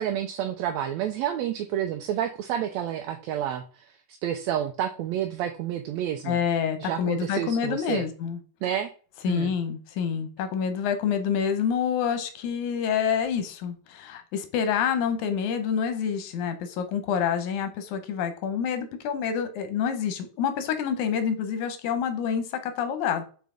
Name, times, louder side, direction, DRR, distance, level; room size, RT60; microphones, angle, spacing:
voice 1, 0.0-6.4 6.8-8.0 8.6-8.9 9.3-9.5, right 10 dB, 80° right, 6 dB, 1.7 m, -30 dB
voice 2, 6.3-8.4 9.2-23.2, left 7 dB, 80° left, 9 dB, 2.3 m, -27 dB
5.6 x 4.6 x 3.7 m, 0.39 s
omnidirectional pair, 3.4 m